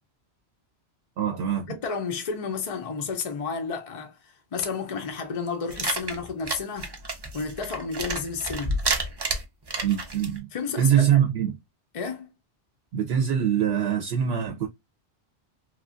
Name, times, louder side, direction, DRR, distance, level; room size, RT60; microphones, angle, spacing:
voice 1, 1.2-1.7 9.8-10.5 10.8-11.6 12.9-14.7, right 9 dB, 70° right, 0.8 m, -23 dB
voice 2, 1.7-6.9 7.3-8.8 10.5-11.2 11.9-12.3, left 5 dB, 50° left, 0.4 m, -31 dB
sound 1, 5.7-10.4, right 2 dB, 35° right, 0.4 m, -30 dB
3.0 x 2.3 x 2.4 m
omnidirectional pair, 1.2 m